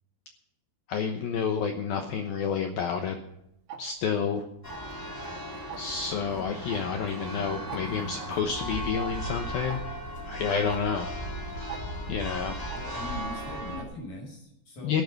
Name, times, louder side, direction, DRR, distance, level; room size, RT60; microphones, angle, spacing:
voice 1, 0.9-3.2 3.8-4.4 5.8-9.8 10.3-11.1 12.1-12.6 14.8-15.0, left 6 dB, 80° left, 5 dB, 2.1 m, -29 dB
Tick-tock, 3.7-3.8 4.7-5.0 5.7-6.0 6.7-6.8 7.1-7.2 7.7-7.8 8.7-8.8 9.7-9.8 10.7-10.8 11.7-11.8 12.7-12.8, right 7 dB, 75° right, 4.1 m, -39 dB
Church bell, 4.6-13.8, equal, 5° left, 1.7 m, -37 dB
voice 2, 12.7-15.0, left 2 dB, 40° left, 1 dB, 7.2 m, -41 dB
14.5 x 11.5 x 5.3 m, 0.82 s
omnidirectional pair, 5.7 m